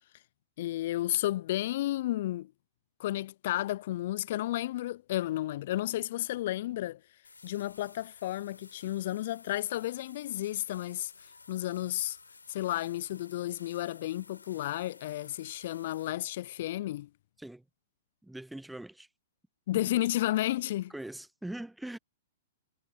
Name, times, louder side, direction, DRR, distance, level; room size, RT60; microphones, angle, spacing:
voice 1, 0.6-2.5 3.0-7.0 7.4-12.2 12.5-17.1 19.7-20.9, left 14 dB, 55° left, 0.6 m, -32 dB
sound 1, 7.2-16.1, left 4 dB, 85° left, 4.6 m, -54 dB
voice 2, 18.2-19.1 19.8-20.0 20.9-22.0, right 1 dB, 5° right, 0.9 m, -42 dB
figure-of-eight pair, 110°, 0 cm